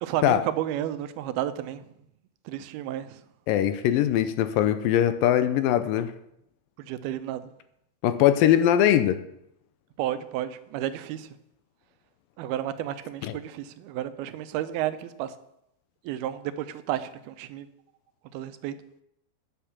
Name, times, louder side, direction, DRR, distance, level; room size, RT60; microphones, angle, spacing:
voice 1, 0.0-1.8 2.5-3.2 6.8-7.4 10.0-11.3 12.4-15.3 16.0-17.7 18.3-18.7, right 12 dB, 85° right, 11 dB, 2.6 m, -32 dB
voice 2, 3.5-6.1 8.0-9.2 13.2-13.4, left 11 dB, 80° left, 11 dB, 2.2 m, -21 dB
9.5 x 7.2 x 7.2 m, 0.79 s
omnidirectional pair, 4.3 m